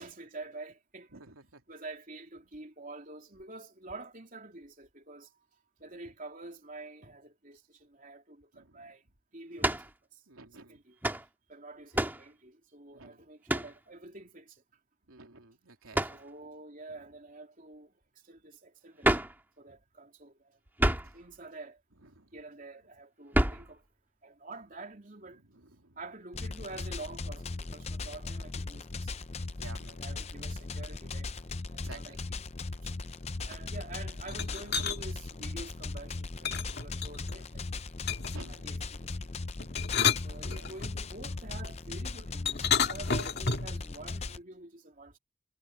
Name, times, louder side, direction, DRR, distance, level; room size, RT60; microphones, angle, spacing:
voice 1, 0.0-1.3 1.7-5.3 5.8-9.0 9.3-9.8 10.1-10.2 10.6-11.0 11.5-14.6 16.0-17.9 18.2-19.1 19.6-20.6 21.1-21.8 22.3-23.8 24.2-25.4 26.0-29.1 29.9-31.3 31.7-32.2 32.8-32.9 33.5-37.6 38.5-39.3 40.1-45.2, right 2 dB, 40° right, 3.4 m, -47 dB
voice 2, 1.1-1.6 8.5-8.9 10.3-10.8 12.9-13.2 15.1-16.0 22.0-22.3 25.5-26.0 29.6-30.0 31.4-31.5 31.8-32.2 38.3-38.6 40.5-40.7, right 3 dB, 85° right, 3.2 m, -51 dB
sound 1, 9.6-9.9 11.0-11.3 11.9-12.3 13.5-13.8 15.9-16.2 19.0-19.4 20.8-21.2 23.3-23.7, right 1 dB, 10° right, 2.0 m, -28 dB
sound 2, 26.3-44.4, left 3 dB, 30° left, 0.6 m, -38 dB
sound 3, 34.3-35.0 36.4-37.4 38.1-38.5 39.6-40.9 42.5-43.8, left 6 dB, 50° left, 2.3 m, -30 dB
head